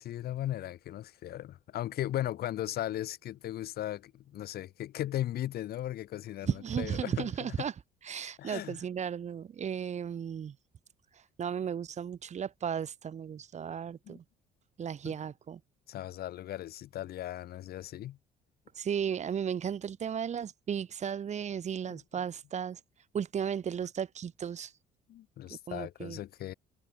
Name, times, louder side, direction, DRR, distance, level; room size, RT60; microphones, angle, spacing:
voice 1, 0.0-7.5 8.4-8.8 14.1-14.2 15.0-15.1 15.9-18.2 21.9-22.0 25.1-26.5, left 13 dB, 65° left, 4.0 m, -37 dB
voice 2, 6.5-10.5 11.1-14.2 14.8-15.6 18.7-22.8 23.1-24.8 25.7-26.2, right 8 dB, 45° right, 2.7 m, -35 dB
cardioid pair, 110°, 17 cm